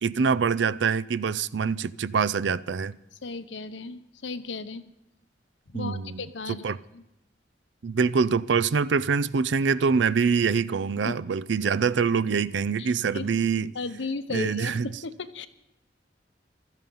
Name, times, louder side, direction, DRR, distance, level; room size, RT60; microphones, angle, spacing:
voice 1, 0.0-3.0 5.7-6.2 6.6-6.8 7.8-13.7 14.3-14.9, right 5 dB, 80° right, 0.5 m, -25 dB
voice 2, 3.2-4.8 5.7-6.6 6.9-7.0 11.0-11.1 12.8-13.3 13.7-15.5, left 3 dB, 90° left, 0.9 m, -35 dB
16.0 x 13.0 x 5.5 m
head